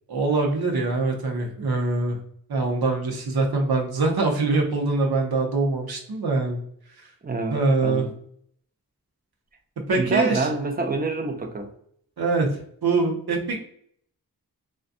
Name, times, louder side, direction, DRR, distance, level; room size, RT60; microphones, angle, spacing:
voice 1, 0.1-2.2 2.5-6.6 7.5-8.1 9.9-10.5 12.2-12.5 12.8-13.6, right 3 dB, 85° right, 0.7 m, -23 dB
voice 2, 7.2-8.1 10.0-11.7, right 3 dB, 25° right, 0.4 m, -26 dB
2.5 x 2.2 x 2.5 m
wide cardioid pair, 40°, 37 cm